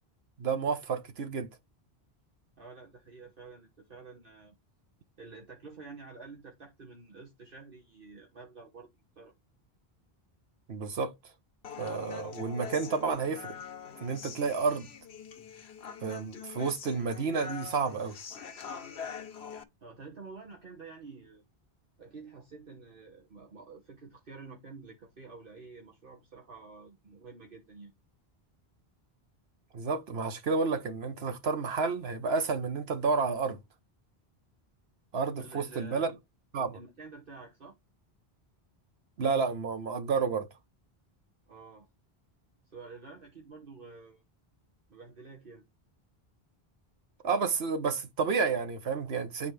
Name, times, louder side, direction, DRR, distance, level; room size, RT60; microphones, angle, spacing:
voice 1, 0.4-1.5 10.7-11.1 11.8-13.6 13.9-14.9 16.0-18.2 29.7-33.6 35.1-36.1 36.5-36.8 39.2-40.5 47.2-49.5, right 5 dB, 75° right, 1.3 m, -30 dB
voice 2, 2.6-4.6 5.2-8.9 9.2-9.3 19.8-21.4 22.0-27.9 35.4-36.1 36.7-37.7 41.5-41.9 42.7-44.2 44.9-45.6, right 4 dB, 60° right, 1.5 m, -49 dB
Human voice, 11.6-19.6, left 7 dB, 85° left, 1.2 m, -44 dB
9.7 x 4.1 x 3.3 m
omnidirectional pair, 1.0 m